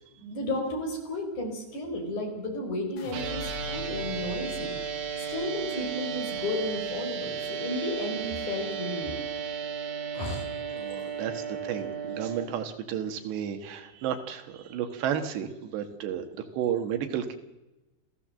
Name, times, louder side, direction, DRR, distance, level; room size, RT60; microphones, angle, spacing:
voice 1, 0.2-4.8 5.3-9.2 10.1-10.5, left 1 dB, 45° left, 3 dB, 5.8 m, -33 dB
sound 1, 3.0-9.1 9.5-10.1, left 7 dB, 65° left, 1.6 m, -45 dB
sound 2, 3.1-12.4, right 7 dB, 60° right, 3.2 m, -34 dB
voice 2, 10.7-16.3 16.6-17.4, right 9 dB, 85° right, 7 dB, 3.9 m, -32 dB
29.0 x 15.5 x 7.7 m, 1.0 s
omnidirectional pair, 4.8 m